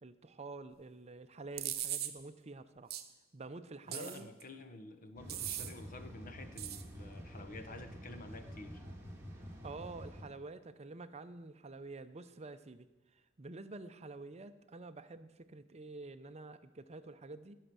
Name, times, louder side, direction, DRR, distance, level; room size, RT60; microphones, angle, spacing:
voice 1, 0.0-2.9 3.3-4.3 9.6-17.6, right 3 dB, 35° right, 10 dB, 0.6 m, -48 dB
sound 1, 1.6-2.1 2.9-3.0 3.9-4.4 5.3-5.7 6.6-6.8, right 12 dB, 50° right, 0.9 m, -39 dB
voice 2, 3.9-8.8, left 2 dB, 45° left, 8 dB, 1.1 m, -50 dB
sound 2, 5.2-10.2, equal, 15° right, 2.0 m, -49 dB
16.0 x 6.5 x 6.9 m, 1.0 s
head